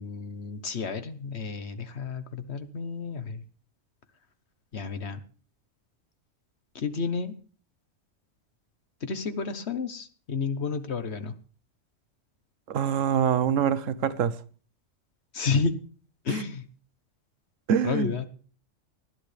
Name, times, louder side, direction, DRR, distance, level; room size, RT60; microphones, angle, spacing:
voice 1, 0.0-3.4 4.7-5.2 6.7-7.3 9.0-11.3 15.3-15.7 16.2-16.6 17.8-18.3, left 5 dB, 60° left, 1.4 m, -31 dB
voice 2, 12.7-14.3 17.7-18.1, right 8 dB, 85° right, 1.3 m, -24 dB
19.5 x 12.5 x 3.4 m
omnidirectional pair, 1.3 m